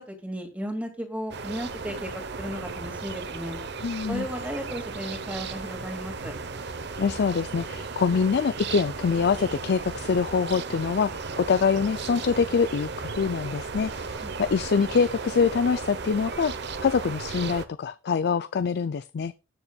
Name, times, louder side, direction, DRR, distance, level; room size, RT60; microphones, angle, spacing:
voice 1, 0.0-2.1 2.4-3.6 4.1-6.3 14.2-14.3, equal, 10° right, 2.3 m, -35 dB
sound 1, 1.3-17.7, right 4 dB, 60° right, 1.0 m, -35 dB
voice 2, 3.8-4.3 7.0-19.3, left 5 dB, 55° left, 0.4 m, -25 dB
19.0 x 7.1 x 2.4 m
head